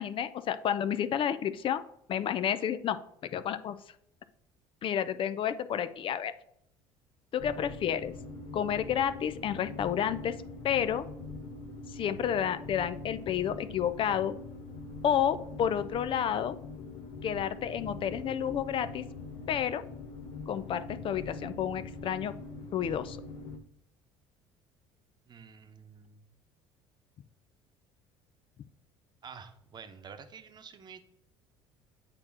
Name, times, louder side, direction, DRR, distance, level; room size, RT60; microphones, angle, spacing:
voice 1, 0.0-1.8 2.1-3.8 4.8-6.3 7.3-8.1 8.5-10.4 10.6-11.1 11.9-14.4 15.0-16.6 17.2-19.1 19.5-19.8 20.5-22.4 22.7-23.2, left 9 dB, 45° left, 12 dB, 0.5 m, -30 dB
sound 1, 7.4-23.6, left 3 dB, 70° left, 1.1 m, -43 dB
voice 2, 25.3-26.3 29.2-31.0, right 6 dB, 35° right, 8 dB, 1.0 m, -49 dB
8.7 x 3.0 x 5.9 m, 0.76 s
supercardioid pair, 85°, 12 cm